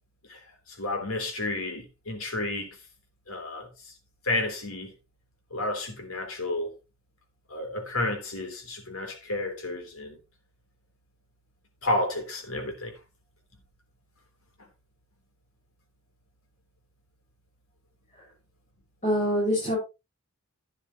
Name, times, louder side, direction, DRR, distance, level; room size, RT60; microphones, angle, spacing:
voice 1, 0.3-2.8 3.3-3.9 4.2-4.9 5.5-6.7 7.5-10.2 11.8-12.9, left 2 dB, 90° left, 3.5 m, -31 dB
voice 2, 19.0-19.8, equal, 35° left, 5.8 m, -25 dB
12.0 x 9.8 x 3.0 m
head